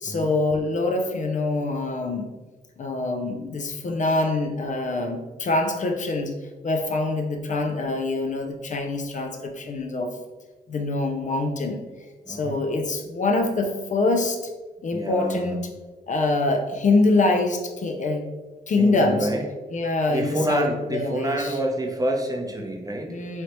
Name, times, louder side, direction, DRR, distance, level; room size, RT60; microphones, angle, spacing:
voice 1, 0.0-2.3 2.8-6.3 6.6-10.1 10.7-11.8 12.3-14.5 14.8-15.6 16.1-18.3 18.7-19.3 19.7-21.5 23.1-23.4, left 2 dB, 50° left, 4 dB, 0.5 m, -24 dB
voice 2, 12.3-12.6 14.9-15.7 18.8-19.5 20.1-23.1, right 1 dB, 20° right, 2 dB, 0.6 m, -28 dB
3.2 x 2.7 x 3.0 m, 1.2 s
cardioid pair, 60°, 17 cm